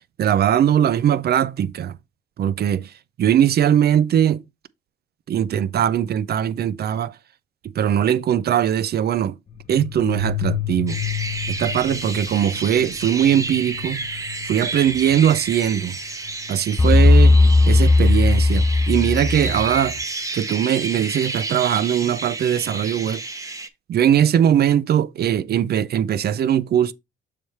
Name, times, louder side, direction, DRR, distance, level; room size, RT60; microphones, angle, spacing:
voice 1, 0.2-1.9 2.4-2.9 3.2-4.4 5.3-7.1 7.8-9.3 9.7-11.0 11.6-14.1 14.5-16.0 16.5-17.4 17.7-20.0 20.3-23.2 23.9-26.9, right 10 dB, 55° right, 0.5 m, -20 dB
sound 1, 9.5-17.9, left 14 dB, 40° left, 1.0 m, -32 dB
sound 2, 10.9-23.7, right 3 dB, 15° right, 0.8 m, -31 dB
sound 3, 16.8-19.9, left 2 dB, 15° left, 0.4 m, -15 dB
6.8 x 3.3 x 4.3 m
cardioid pair, 90°, 20 cm